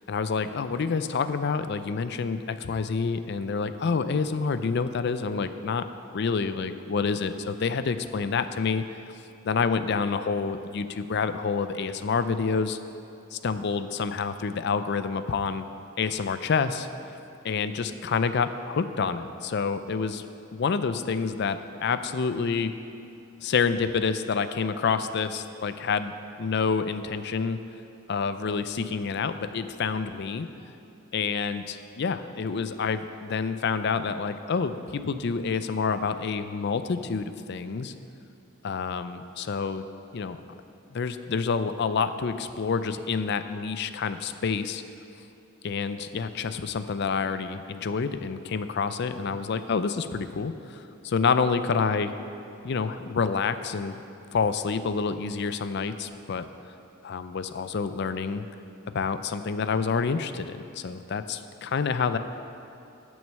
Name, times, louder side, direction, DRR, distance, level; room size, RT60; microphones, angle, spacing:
voice 1, 0.1-5.9 6.1-8.8 9.4-12.8 13.3-15.7 16.0-16.9 17.4-20.2 20.5-22.7 23.4-27.6 28.1-30.5 31.1-37.9 38.6-39.8 40.1-40.4 40.9-44.8 45.6-52.1 52.6-54.0 54.3-56.5 57.0-58.4 58.9-62.2, left 5 dB, 50° left, 11 dB, 0.4 m, -28 dB
8.8 x 6.3 x 7.3 m, 2.7 s
head